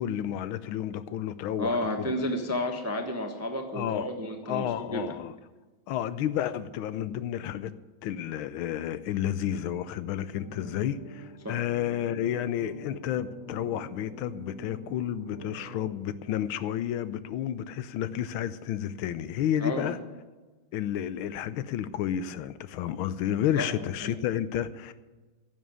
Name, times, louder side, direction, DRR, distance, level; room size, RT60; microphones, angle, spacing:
voice 1, 0.0-2.1 3.7-4.1 4.5-5.3 5.9-7.7 8.0-20.0 20.7-24.9, left 10 dB, 85° left, 14 dB, 1.4 m, -31 dB
voice 2, 1.6-5.1 11.4-11.6 19.6-19.9 23.6-23.7 24.0-24.1, left 1 dB, 15° right, 4 dB, 0.5 m, -31 dB
sound 1, 10.3-15.9, right 2 dB, 20° left, 5.5 m, -46 dB
10.5 x 7.5 x 9.2 m, 1.3 s
omnidirectional pair, 2.2 m